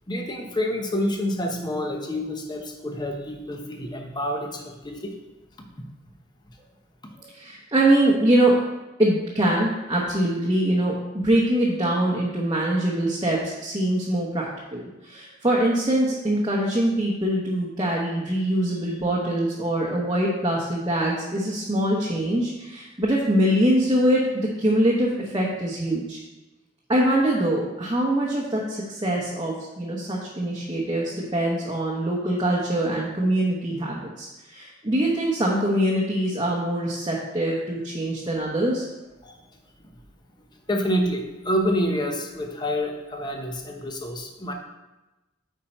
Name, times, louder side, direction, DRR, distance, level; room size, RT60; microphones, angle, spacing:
voice 1, 0.1-5.1 39.2-39.4 39.8-39.9 40.7-44.5, equal, 25° left, 3 dB, 0.9 m, -28 dB
voice 2, 7.2-8.6 9.0-26.2 26.9-38.9, right 1 dB, 25° right, -4 dB, 1.0 m, -23 dB
8.3 x 4.5 x 4.4 m, 1.0 s
head